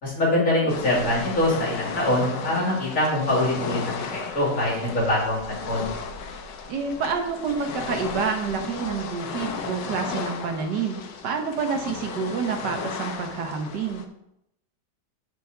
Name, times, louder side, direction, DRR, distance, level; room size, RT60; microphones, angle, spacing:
voice 1, 0.0-5.9, left 1 dB, 45° left, -5 dB, 3.3 m, -24 dB
sound 1, 0.7-14.0, left 5 dB, 85° left, 1.5 m, -35 dB
voice 2, 6.7-14.1, right 5 dB, 75° right, 4 dB, 1.6 m, -28 dB
6.2 x 5.2 x 6.6 m, 0.80 s
omnidirectional pair, 1.9 m